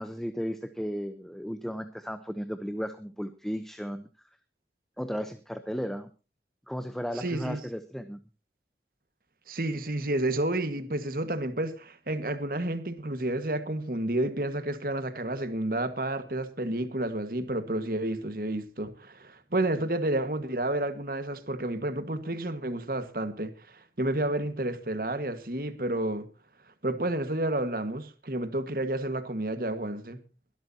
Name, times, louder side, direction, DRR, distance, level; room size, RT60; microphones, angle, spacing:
voice 1, 0.0-4.1 5.0-6.1 6.7-8.2, equal, ahead, 0.7 m, -35 dB
voice 2, 7.1-7.6 9.5-26.3 26.8-30.2, right 1 dB, 50° right, 1.6 m, -30 dB
22.5 x 12.5 x 2.8 m
head